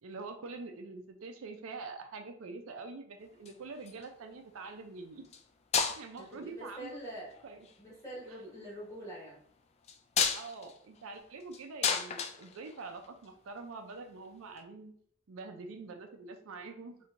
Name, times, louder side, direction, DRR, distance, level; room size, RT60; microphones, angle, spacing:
voice 1, 0.0-5.3 6.0-7.0 7.4-7.7 8.3-8.4 10.3-14.9 15.3-17.0, right 3 dB, 75° right, 5 dB, 0.5 m, -45 dB
sound 1, 3.3-4.1 5.2-5.4 5.7-6.3 7.3-7.8 9.8-13.3 14.6-14.7, left 6 dB, 30° left, 0.3 m, -33 dB
voice 2, 6.2-7.4 7.8-9.4, right 1 dB, 15° left, -6 dB, 1.5 m, -45 dB
4.3 x 2.7 x 2.5 m, 0.63 s
head